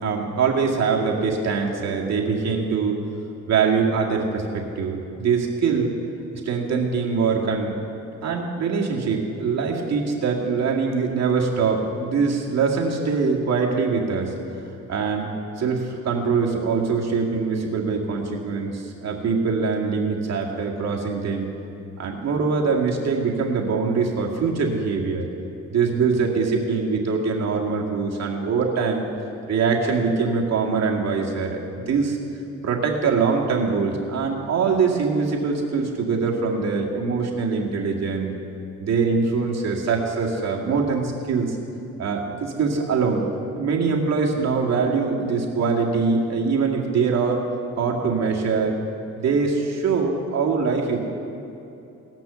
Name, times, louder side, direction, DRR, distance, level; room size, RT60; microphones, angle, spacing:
voice 1, 0.0-3.0 3.5-4.4 4.8-5.9 6.5-7.7 8.2-14.3 14.9-15.3 15.6-21.5 22.0-25.3 25.7-29.1 29.5-32.2 32.6-38.3 38.8-41.6 42.0-43.3 43.5-47.4 47.8-48.8 49.1-51.0, right 5 dB, 60° right, -1 dB, 2.1 m, -23 dB
18.0 x 6.0 x 6.8 m, 2.8 s
cardioid pair, 90°, 30 cm